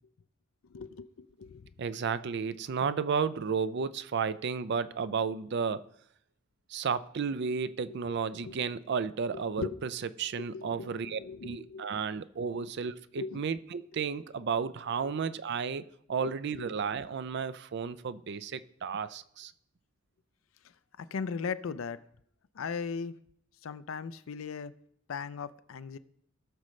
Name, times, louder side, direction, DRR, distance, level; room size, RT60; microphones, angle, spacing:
voice 1, 0.7-1.6 7.9-8.1 8.4-8.6 9.6-9.8 10.5-11.9 13.2-13.4 15.0-15.1 16.2-16.7 21.0-22.0 22.6-23.1 23.6-24.7 25.1-26.0, left 5 dB, 85° left, 0.5 m, -38 dB
voice 2, 1.8-5.8 6.7-19.5, right 6 dB, 55° right, 0.4 m, -33 dB
17.5 x 6.3 x 3.2 m
head